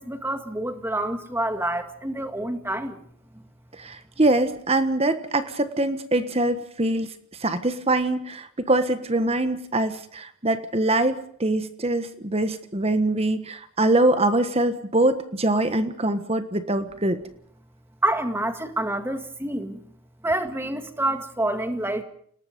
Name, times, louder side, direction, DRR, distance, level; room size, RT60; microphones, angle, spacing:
voice 1, 0.0-3.0 18.0-19.8 20.2-22.0, right 1 dB, 10° right, 8 dB, 2.0 m, -27 dB
voice 2, 3.7-7.1 7.4-17.2, right 2 dB, 30° right, 10 dB, 1.3 m, -23 dB
30.0 x 19.5 x 5.3 m, 0.62 s
head